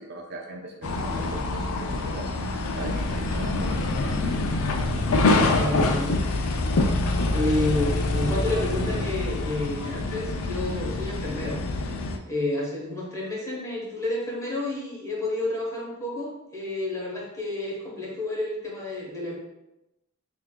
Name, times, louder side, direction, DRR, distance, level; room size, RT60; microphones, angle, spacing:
voice 1, 0.0-6.1, right 1 dB, 50° right, 1 dB, 0.6 m, -40 dB
sound 1, 0.8-12.2, left 2 dB, 75° left, 0.4 m, -26 dB
voice 2, 5.5-6.1 7.3-11.6 12.3-19.4, left 2 dB, 15° left, -4 dB, 1.0 m, -30 dB
5.8 x 2.6 x 2.2 m, 0.92 s
head